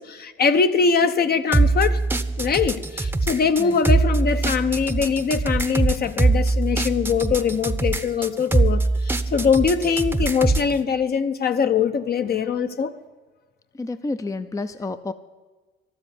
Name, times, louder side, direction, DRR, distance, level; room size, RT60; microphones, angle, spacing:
voice 1, 0.0-2.0 2.4-12.9, left 6 dB, 50° left, 1.0 m, -22 dB
sound 1, 1.5-10.7, right 3 dB, 10° right, 0.8 m, -22 dB
voice 2, 13.8-15.1, left 3 dB, 15° left, 0.5 m, -30 dB
12.0 x 7.8 x 9.7 m
cardioid pair, 90°, 20 cm